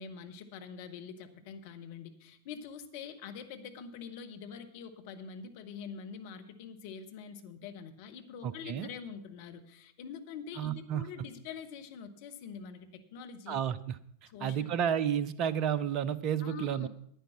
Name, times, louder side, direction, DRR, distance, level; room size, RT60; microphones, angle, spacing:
voice 1, 0.0-13.6 14.3-14.7 16.4-16.9, left 6 dB, 50° left, 6 dB, 1.1 m, -45 dB
voice 2, 8.4-8.9 10.6-11.0 13.5-14.0 14.4-16.9, right 9 dB, 40° right, 17 dB, 0.5 m, -31 dB
10.0 x 9.3 x 5.9 m, 0.71 s
figure-of-eight pair, 90°, 0 cm